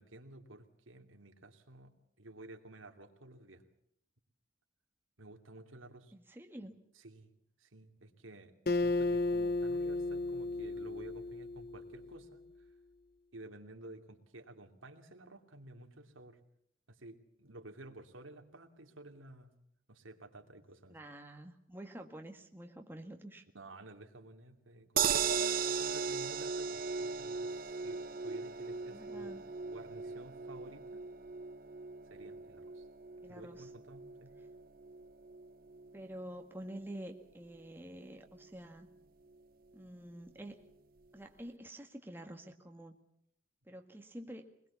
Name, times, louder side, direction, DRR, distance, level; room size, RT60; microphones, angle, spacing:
voice 1, 0.0-3.6 5.2-6.1 6.9-7.3 7.6-12.7 13.3-16.4 16.9-19.5 19.9-21.0 23.5-29.3 29.6-31.1 32.1-32.9 33.3-34.3, right 2 dB, 85° right, 5 dB, 2.8 m, -53 dB
voice 2, 6.1-6.8 20.9-23.5 28.9-29.5 33.2-33.7 35.9-38.9 39.7-40.6 41.1-43.0 43.6-44.5, right 1 dB, 10° right, 4 dB, 1.7 m, -48 dB
Acoustic guitar, 8.7-12.1, left 2 dB, 50° left, 1.0 m, -34 dB
sound 1, 25.0-37.2 37.6-37.7 38.0-38.1, right 6 dB, 45° right, 0.9 m, -38 dB
24.0 x 21.0 x 7.0 m, 0.71 s
head